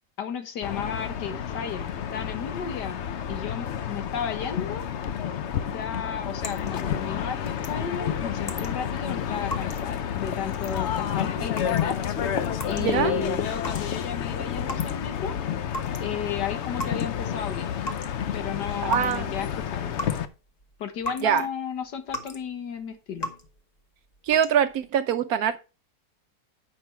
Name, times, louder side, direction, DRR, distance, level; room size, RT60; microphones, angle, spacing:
voice 1, 0.2-3.0 3.3-4.9 5.7-12.0 12.6-15.3 16.0-17.7 18.3-20.0 20.8-23.3, left 7 dB, 75° left, 1.8 m, -34 dB
sound 1, 0.6-20.2, left 8 dB, 60° left, 0.7 m, -30 dB
sound 2, 5.8-15.3 15.5-21.5 21.8-22.5 22.8-23.6 24.1-24.8, left 1 dB, 30° left, 1.0 m, -39 dB
voice 2, 12.8-13.1 18.8-19.3 21.2-21.5 24.3-25.6, right 8 dB, 70° right, 1.0 m, -23 dB
8.7 x 5.5 x 4.5 m
omnidirectional pair, 1.8 m